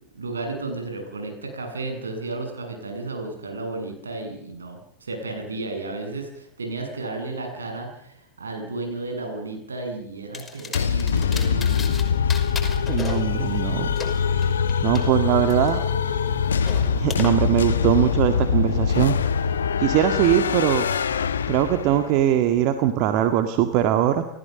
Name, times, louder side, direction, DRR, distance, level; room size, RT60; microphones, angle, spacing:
voice 1, 0.1-11.9 14.1-14.2, right 2 dB, 70° right, 4 dB, 7.9 m, -33 dB
sound 1, 10.3-12.0 12.3-15.0 15.5-17.3, left 5 dB, 15° left, 5.7 m, -36 dB
sound 2, 10.7-22.1, left 6 dB, 65° left, 1.5 m, -23 dB
voice 2, 12.9-13.9 14.8-15.8 17.0-19.1 19.8-20.9 21.5-24.2, right 11 dB, 40° right, 8 dB, 1.9 m, -21 dB
30.0 x 16.0 x 7.0 m, 0.79 s
figure-of-eight pair, 90°, 0 cm